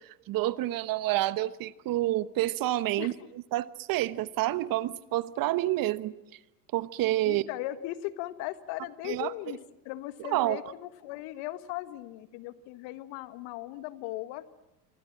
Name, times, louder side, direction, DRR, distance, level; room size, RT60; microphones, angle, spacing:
voice 1, 0.0-3.1 3.5-6.2 6.7-7.4 9.0-9.3 10.2-10.6, right 16 dB, 45° right, 1.1 m, -28 dB
voice 2, 7.3-9.6 9.8-14.4, left 16 dB, 60° left, 1.6 m, -38 dB
27.5 x 25.0 x 7.5 m
hypercardioid pair, 90°, 48 cm